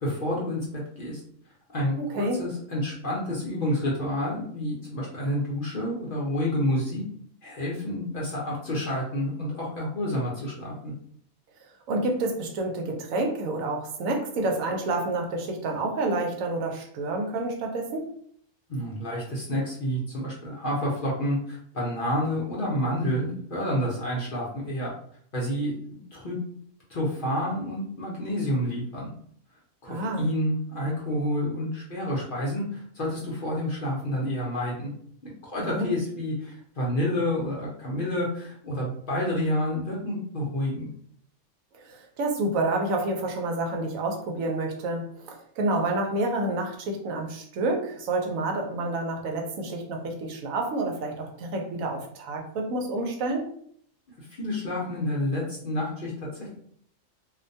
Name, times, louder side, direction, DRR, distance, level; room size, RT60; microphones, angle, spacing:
voice 1, 0.0-1.2 1.7-7.0 7.4-10.9 18.7-24.9 25.3-26.4 26.9-29.1 29.8-34.9 35.2-40.9 54.2-56.6, left 1 dB, 50° left, -5 dB, 0.7 m, -29 dB
voice 2, 2.0-2.4 11.9-18.1 29.9-30.3 35.6-35.9 41.8-53.5, right 2 dB, 85° right, 2 dB, 1.0 m, -29 dB
2.5 x 2.1 x 2.6 m, 0.62 s
omnidirectional pair, 1.4 m